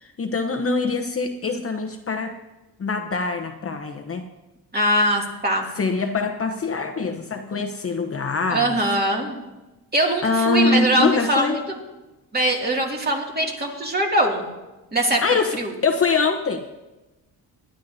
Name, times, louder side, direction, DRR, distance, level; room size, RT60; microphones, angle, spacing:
voice 1, 0.0-2.3 2.8-4.2 5.8-8.8 10.2-11.6 15.2-15.5 15.8-16.6, left 4 dB, 35° left, 4 dB, 0.9 m, -23 dB
voice 2, 4.7-5.7 8.5-9.4 9.9-11.6 12.3-14.5 14.9-15.2 15.5-15.7, right 1 dB, 25° right, -1 dB, 2.5 m, -22 dB
19.0 x 11.5 x 2.8 m, 1.1 s
cardioid pair, 105°, 39 cm